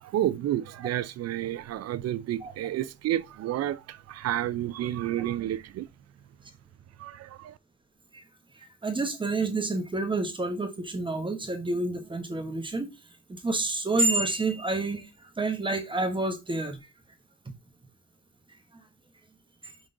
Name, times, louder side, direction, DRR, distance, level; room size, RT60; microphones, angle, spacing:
voice 1, 0.0-5.9 7.0-7.6, right 12 dB, 55° right, 0.5 m, -30 dB
voice 2, 8.5-12.9 13.3-16.8 19.6-19.7, right 2 dB, 15° right, 0.9 m, -29 dB
5.1 x 3.7 x 2.5 m
cardioid pair, 90°, 30 cm